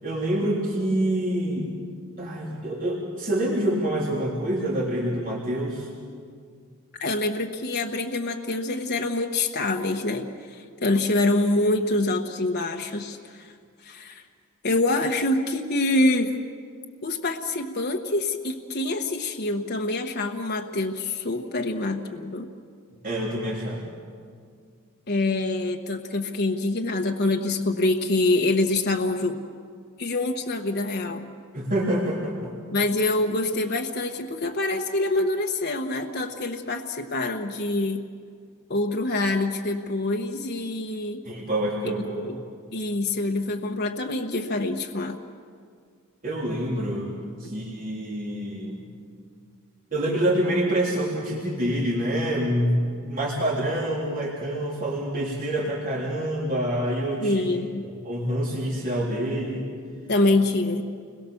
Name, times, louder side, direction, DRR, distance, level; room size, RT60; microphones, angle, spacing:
voice 1, 0.0-1.7 2.2-5.9 23.0-23.8 31.5-32.6 41.2-42.4 46.2-47.1 47.4-48.8 49.9-57.4 57.8-59.7, right 1 dB, 40° right, -4 dB, 3.6 m, -26 dB
voice 2, 7.0-13.5 13.8-14.2 14.6-16.4 17.0-22.5 25.1-29.4 30.0-31.3 32.7-38.0 38.7-41.2 41.8-42.3 42.7-45.2 57.2-57.8 60.1-60.8, left 2 dB, 50° left, 2 dB, 1.1 m, -25 dB
29.5 x 22.0 x 7.1 m, 2.1 s
head